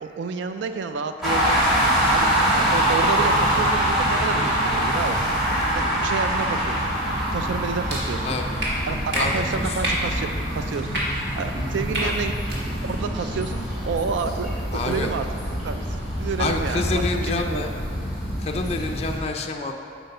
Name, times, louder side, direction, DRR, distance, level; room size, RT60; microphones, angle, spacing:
voice 1, 0.0-7.0 7.3-8.4 8.9-12.3 12.7-14.5 14.8-15.3 15.6-17.0 17.3-17.6, right 5 dB, 80° right, 8 dB, 0.4 m, -30 dB
sound 1, 1.2-19.2, right 1 dB, ahead, 1.8 m, -24 dB
sound 2, 7.9-8.0 8.6-8.7 9.1-9.2 9.8-10.0 10.9-11.0 11.9-12.1 12.4-12.6, right 1 dB, 60° right, 1.7 m, -26 dB
voice 2, 8.2-8.6 9.1-9.8 12.0-12.2 14.7-15.1 16.4-17.7 18.4-19.7, left 3 dB, 35° left, 3 dB, 0.4 m, -28 dB
7.9 x 4.6 x 5.4 m, 2.7 s
head